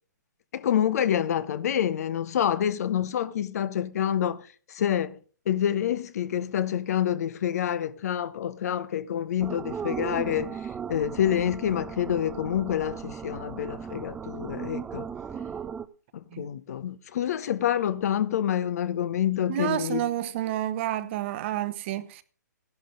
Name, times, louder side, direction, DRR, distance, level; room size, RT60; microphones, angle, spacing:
voice 1, 0.5-5.2 5.5-10.6 10.9-15.1 16.1-20.0, left 10 dB, 55° left, 1.1 m, -27 dB
sound 1, 9.4-15.9, right 7 dB, 10° right, 0.6 m, -37 dB
voice 2, 19.5-22.2, right 13 dB, 40° right, 1.1 m, -29 dB
14.0 x 11.5 x 3.8 m
hypercardioid pair, 140°, 10 cm